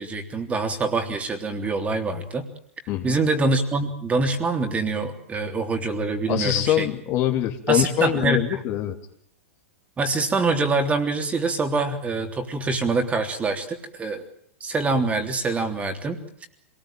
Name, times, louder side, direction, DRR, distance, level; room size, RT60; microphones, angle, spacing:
voice 1, 0.0-2.4 3.0-6.9 7.7-8.6 10.0-14.2 14.6-16.5, right 3 dB, 20° right, 5 dB, 3.4 m, -25 dB
voice 2, 2.9-3.2 6.3-8.9, left 12 dB, 40° left, 5 dB, 2.9 m, -23 dB
26.0 x 19.5 x 9.1 m, 0.69 s
hypercardioid pair, 110°, 7 cm